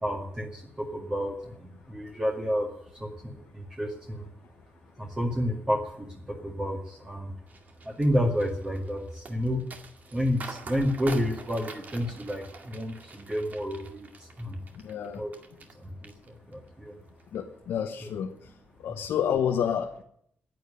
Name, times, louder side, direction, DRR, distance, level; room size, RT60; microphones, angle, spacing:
voice 1, 0.0-2.7 2.9-4.3 5.0-7.3 7.8-9.6 10.1-14.6 15.2-15.4 15.8-17.0 18.0-18.1, equal, 20° right, 0 dB, 2.1 m, -30 dB
sound 1, 7.5-15.7 16.0-16.7 17.1-17.4, right 3 dB, 45° right, 2.1 m, -45 dB
voice 2, 14.8-15.2 17.3-18.3 18.8-20.0, left 8 dB, 90° left, 4 dB, 1.2 m, -29 dB
11.0 x 9.9 x 10.0 m, 0.68 s
cardioid pair, 125°, 4 cm